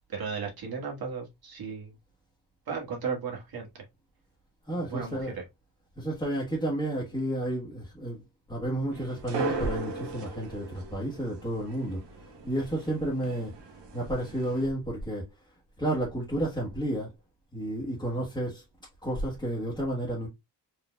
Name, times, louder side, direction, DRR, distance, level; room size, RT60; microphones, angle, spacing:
voice 1, 0.1-1.9 2.7-3.8 4.7-5.4, right 5 dB, 60° right, 1.9 m, -35 dB
voice 2, 4.7-5.3 6.0-13.5 13.9-15.3 15.8-17.1 17.5-18.6 19.0-20.3, right 1 dB, 10° left, 1.3 m, -31 dB
sound 1, 8.9-14.7, right 3 dB, 85° right, 1.5 m, -38 dB
4.4 x 3.8 x 2.3 m
wide cardioid pair, 150°, 41 cm